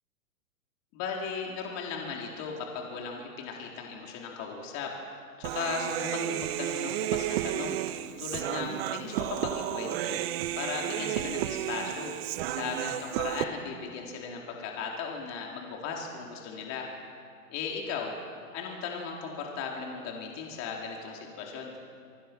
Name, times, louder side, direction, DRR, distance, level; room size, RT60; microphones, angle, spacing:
voice 1, 0.9-4.9 5.4-7.8 8.2-10.2 10.6-12.1 12.5-16.9 17.5-18.1 18.5-21.7, left 5 dB, 35° left, 0 dB, 4.3 m, -37 dB
Human voice, 5.4-13.4, right 13 dB, 40° right, 1.2 m, -32 dB
27.5 x 24.0 x 6.3 m, 2.2 s
hypercardioid pair, 125°, 45 cm